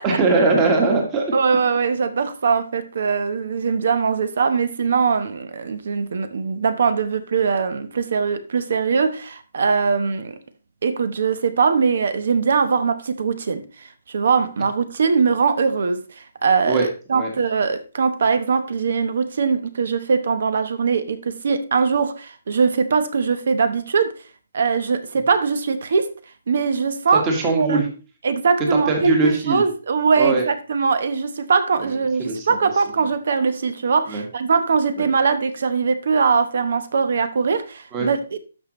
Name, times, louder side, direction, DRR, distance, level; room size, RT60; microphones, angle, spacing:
voice 1, 0.0-1.2 16.7-17.3 27.2-27.8 28.9-29.6 30.2-30.4 31.8-31.9 32.2-32.6 34.1-34.2 35.0-35.1 37.9-38.1, right 3 dB, 15° right, 1.6 m, -21 dB
voice 2, 1.3-10.4 10.8-24.2 24.5-26.1 26.5-27.3 27.5-27.9 28.2-38.4, right 5 dB, 55° right, 0.9 m, -21 dB
12.5 x 5.3 x 3.1 m
hypercardioid pair, 175°, 0 cm